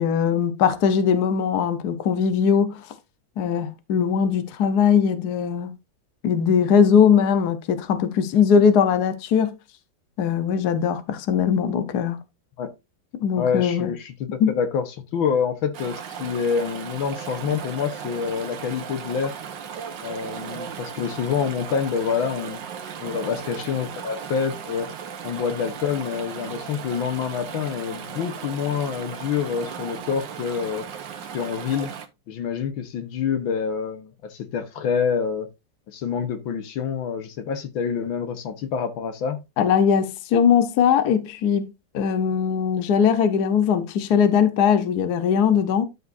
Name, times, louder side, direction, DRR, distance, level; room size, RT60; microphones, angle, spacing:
voice 1, 0.0-2.9 3.4-5.7 6.2-9.5 10.2-12.2 13.2-13.9 14.4-14.5 39.6-41.7 41.9-45.9, left 7 dB, 60° left, 1.4 m, -20 dB
voice 2, 13.4-19.4 20.0-22.6 23.0-24.9 25.2-30.9 31.3-31.9 32.3-35.5 35.9-39.4, left 6 dB, 85° left, 1.9 m, -27 dB
Chatter / Stream, 15.7-32.1, right 7 dB, 70° right, 1.7 m, -36 dB
12.5 x 5.5 x 2.6 m
omnidirectional pair, 2.1 m